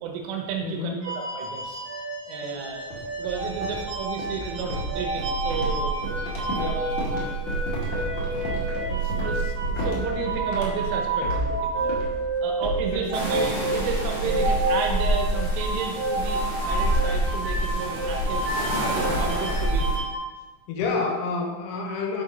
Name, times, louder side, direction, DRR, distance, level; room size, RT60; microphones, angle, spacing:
voice 1, 0.0-0.9 1.3-1.8 2.3-2.9 3.2-6.0 6.6-7.0 7.2-7.6 8.2-8.3 8.8-11.9 12.4-18.5 18.8-19.9 20.8-20.9, right 6 dB, 80° right, 2 dB, 3.5 m, -32 dB
voice 2, 0.6-1.1 2.4-2.7 6.6-6.9 12.9-13.1 20.7-22.2, left 4 dB, 75° left, 2 dB, 3.5 m, -29 dB
sound 1, 1.0-20.2, right 2 dB, 50° right, 3.4 m, -30 dB
sound 2, 2.9-13.8 14.1-14.5 14.9-15.1 15.5-15.8 16.8-16.9 17.2-17.3 17.5-18.5, right 2 dB, 45° left, 2.4 m, -31 dB
sound 3, 13.1-20.0, right 1 dB, 20° right, 2.1 m, -27 dB
7.6 x 7.2 x 5.2 m, 1.2 s
omnidirectional pair, 5.8 m